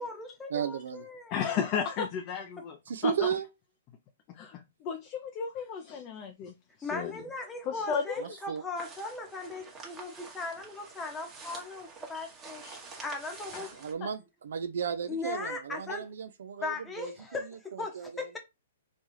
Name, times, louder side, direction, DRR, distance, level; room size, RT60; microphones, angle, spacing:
voice 1, 0.0-1.5 2.6-2.7 6.8-12.6 13.0-13.8 15.1-16.1 16.6-18.4, left 3 dB, 10° left, 0.9 m, -38 dB
voice 2, 0.5-1.1 2.9-3.4 8.2-8.6 13.7-17.4 17.7-18.1, right 7 dB, 70° right, 0.5 m, -34 dB
voice 3, 1.3-2.8 3.0-3.1 4.3-6.5 6.8-7.1 7.7-8.4 12.6-12.8 14.0-14.1, left 7 dB, 35° left, 0.5 m, -33 dB
sound 1, 8.7-13.9, right 4 dB, 15° right, 1.1 m, -47 dB
4.1 x 2.3 x 3.1 m
hypercardioid pair, 140°, 0 cm